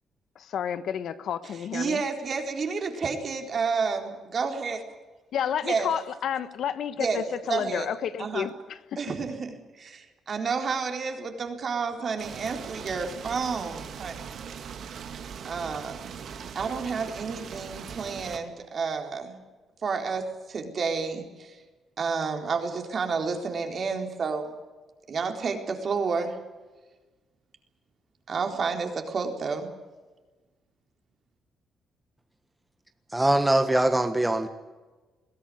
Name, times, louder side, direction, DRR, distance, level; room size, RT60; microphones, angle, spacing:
voice 1, 0.4-2.0 5.3-8.8, left 9 dB, 70° left, 13 dB, 1.3 m, -30 dB
voice 2, 1.4-4.8 5.6-5.9 7.0-7.2 7.5-8.5 9.0-14.3 15.4-16.2 16.5-19.4 19.8-21.6 22.0-24.5 25.1-26.4 28.3-29.7, right 5 dB, 50° right, 4 dB, 4.0 m, -30 dB
sound 1, 12.2-18.4, right 7 dB, 65° right, 2.5 m, -40 dB
voice 3, 33.1-34.5, right 1 dB, 10° right, 7 dB, 1.5 m, -22 dB
21.5 x 16.5 x 9.4 m, 1.3 s
cardioid pair, 90°, 0 cm